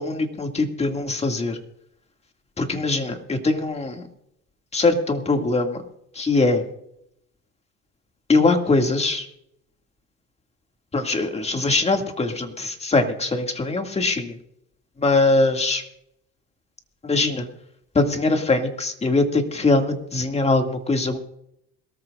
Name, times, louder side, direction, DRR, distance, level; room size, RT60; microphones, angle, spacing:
voice 1, 0.0-1.6 2.6-4.1 4.7-5.8 6.1-6.6 8.3-9.3 10.9-14.4 15.0-15.8 17.0-17.5 17.9-21.2, left 3 dB, 20° left, 5 dB, 2.3 m, -22 dB
22.5 x 14.0 x 2.5 m, 0.76 s
supercardioid pair, 100°, 30 cm